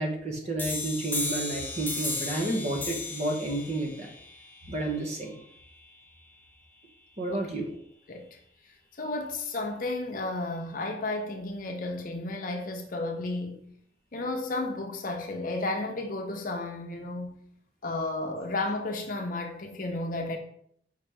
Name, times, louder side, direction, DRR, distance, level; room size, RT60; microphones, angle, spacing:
voice 1, 0.0-4.1 4.7-5.4 7.2-7.7, right 2 dB, 40° right, 0.8 m, -31 dB
sound 1, 0.6-6.0, left 3 dB, 10° left, 0.6 m, -36 dB
voice 2, 8.1-8.4 9.0-13.7 14.1-17.4 17.8-20.4, left 2 dB, 50° left, 0.7 m, -33 dB
5.0 x 2.9 x 3.4 m
head